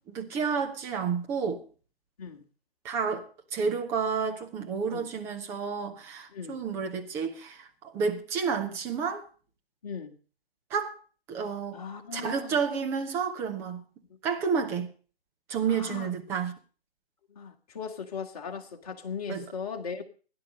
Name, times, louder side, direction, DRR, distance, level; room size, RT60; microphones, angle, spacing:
voice 1, 0.1-1.6 2.8-3.2 3.5-9.2 10.7-11.0 11.3-11.8 12.1-13.8 14.2-14.9 15.5-16.5 19.3-19.4, right 6 dB, 10° right, 0.9 m, -30 dB
voice 2, 6.3-6.6 9.8-10.2 11.7-12.6 15.7-16.1 17.3-20.0, left 6 dB, 35° left, 2.4 m, -38 dB
17.0 x 10.5 x 5.4 m
figure-of-eight pair, 150°, 31 cm